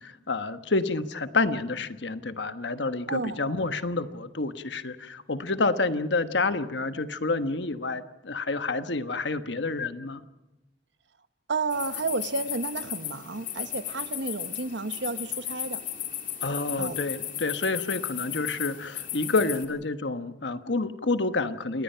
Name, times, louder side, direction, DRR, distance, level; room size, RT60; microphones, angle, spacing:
voice 1, 0.3-10.2 16.4-21.8, left 3 dB, 70° left, 10 dB, 1.3 m, -28 dB
voice 2, 3.1-3.4 11.5-15.8 16.8-17.0, right 3 dB, 70° right, 12 dB, 1.1 m, -31 dB
sound 1, 11.7-19.6, left 10 dB, 45° left, 2.7 m, -35 dB
28.0 x 19.5 x 5.7 m, 1.0 s
head